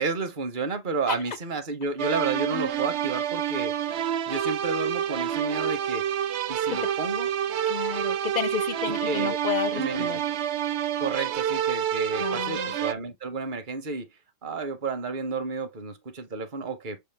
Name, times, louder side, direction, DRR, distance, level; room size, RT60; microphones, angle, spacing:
voice 1, 0.0-3.8 4.3-6.1 6.5-7.3 8.8-9.4 9.7-10.1 11.0-14.1 14.4-17.0, right 4 dB, 50° right, 1.1 m, -31 dB
sound 1, 2.0-12.9, right 10 dB, 80° right, 0.9 m, -28 dB
voice 2, 7.7-10.2 12.2-12.8, left 7 dB, 55° left, 0.5 m, -31 dB
6.8 x 2.3 x 3.4 m
omnidirectional pair, 1.2 m